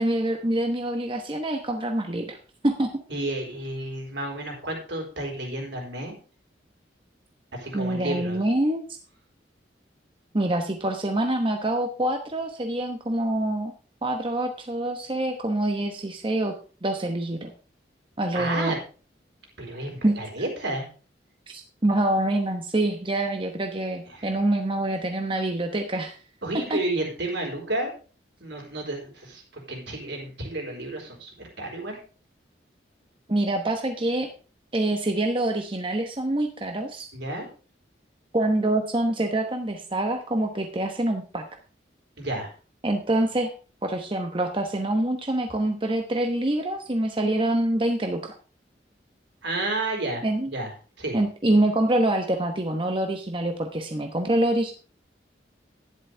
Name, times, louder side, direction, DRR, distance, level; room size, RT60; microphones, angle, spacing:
voice 1, 0.0-2.4 2.6-2.9 7.7-8.8 10.3-13.7 14.0-16.5 16.8-17.5 18.2-18.7 20.0-20.2 21.5-26.2 26.7-26.8 33.3-34.3 34.7-37.1 38.3-41.5 42.8-43.5 43.8-48.3 50.2-50.5 51.1-54.7, right 1 dB, 30° right, 4 dB, 1.0 m, -25 dB
voice 2, 3.1-6.1 7.5-8.4 18.3-18.8 19.6-20.9 24.1-24.3 26.4-27.9 28.4-32.0 37.1-37.5 42.2-42.5 49.4-50.7 51.0-51.2, right 2 dB, 75° right, 0 dB, 4.3 m, -31 dB
11.5 x 10.5 x 3.4 m, 0.37 s
head